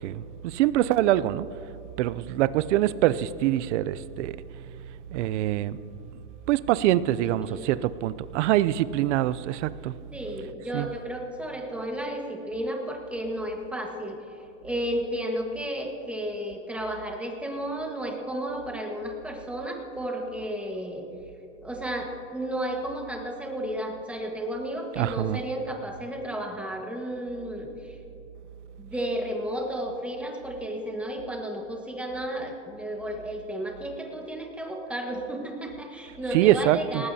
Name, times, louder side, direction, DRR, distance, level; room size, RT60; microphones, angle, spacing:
voice 1, 0.0-1.5 2.0-4.4 5.1-5.8 6.5-9.9 10.7-10.9 25.0-25.4 36.3-37.0, right 14 dB, 70° right, 17 dB, 0.6 m, -24 dB
voice 2, 7.4-7.8 10.1-21.0 21.6-28.0 28.8-37.1, right 1 dB, 5° right, 1 dB, 1.4 m, -33 dB
19.0 x 18.0 x 2.8 m, 2.9 s
supercardioid pair, 150°, 36 cm